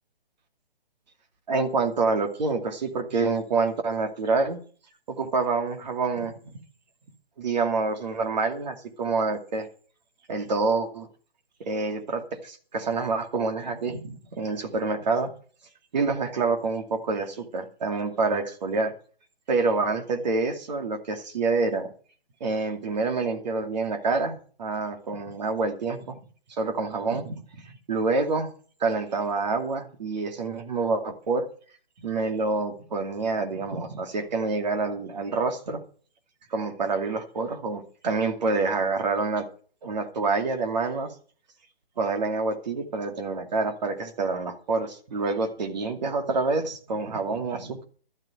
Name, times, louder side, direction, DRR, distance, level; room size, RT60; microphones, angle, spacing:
voice 1, 1.5-4.6 5.1-6.6 7.4-9.7 10.3-11.1 11.6-15.3 15.9-18.9 19.5-21.9 22.4-26.2 26.6-28.5 28.8-31.5 32.0-35.8 36.5-39.5 39.8-41.1 42.0-47.8, right 3 dB, 45° right, 5 dB, 2.5 m, -27 dB
12.5 x 7.6 x 7.8 m, 0.44 s
figure-of-eight pair, 140°, 29 cm